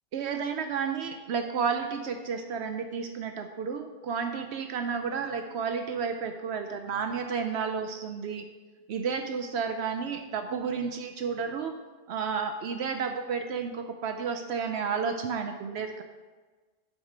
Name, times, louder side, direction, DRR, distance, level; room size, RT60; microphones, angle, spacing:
voice 1, 0.1-8.5 8.9-11.7 12.1-16.0, right 6 dB, 75° right, 6 dB, 0.8 m, -31 dB
6.3 x 4.9 x 6.4 m, 1.4 s
omnidirectional pair, 1.2 m